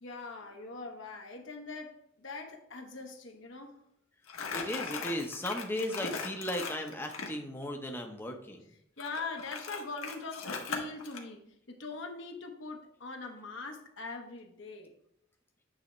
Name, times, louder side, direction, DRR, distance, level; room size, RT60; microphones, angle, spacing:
voice 1, 0.0-3.8 9.0-14.9, left 3 dB, 60° left, 2 dB, 1.0 m, -42 dB
Crumpling crinkling, 4.3-7.3 9.0-11.2, left 5 dB, 80° left, 1.3 m, -39 dB
voice 2, 4.5-8.6, left 1 dB, 10° left, 3 dB, 0.7 m, -36 dB
8.7 x 3.5 x 4.3 m, 0.76 s
head